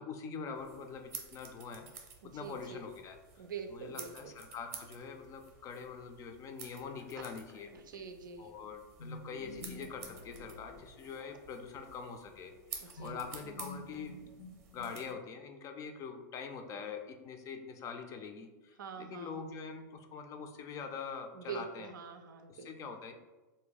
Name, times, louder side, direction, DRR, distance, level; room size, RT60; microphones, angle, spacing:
voice 1, 0.0-3.2 3.7-7.7 8.4-12.5 13.0-14.4 14.7-21.9 22.5-23.1, left 5 dB, 30° left, 5 dB, 0.4 m, -44 dB
sound 1, 0.6-15.1, right 5 dB, 20° right, 0.7 m, -52 dB
voice 2, 2.2-2.8 3.4-4.3 6.9-7.2 7.6-8.6 11.2-11.3 12.8-13.2 18.8-19.4 21.3-22.9, right 6 dB, 85° right, 6 dB, 0.4 m, -46 dB
sound 2, 9.0-11.6 13.0-15.4, left 2 dB, 75° left, 0.6 m, -49 dB
2.6 x 2.1 x 3.9 m, 1.2 s
hypercardioid pair, 110°, 10 cm